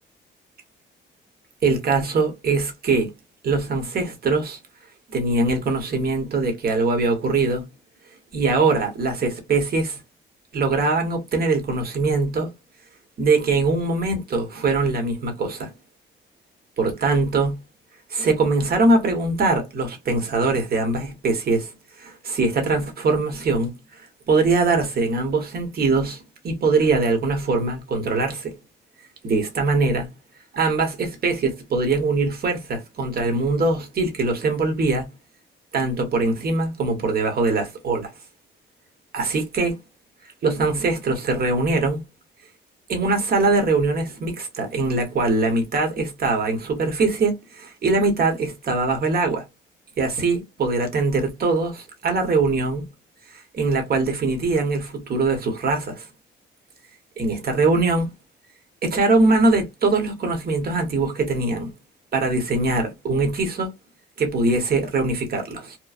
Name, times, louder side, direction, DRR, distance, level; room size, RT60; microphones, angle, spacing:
voice 1, 1.6-3.1 3.4-4.6 5.1-7.6 8.3-10.0 10.5-12.5 13.2-15.7 16.8-17.6 18.1-21.7 22.0-23.7 24.3-28.5 29.2-30.1 30.5-35.1 35.7-38.1 39.1-39.8 40.4-42.0 42.9-49.4 50.0-52.9 53.3-56.1 57.2-58.1 58.8-61.7 62.1-63.7 64.2-65.8, right 3 dB, 50° right, 1.2 m, -22 dB
3.0 x 2.2 x 2.4 m
cardioid pair, 90°, 20 cm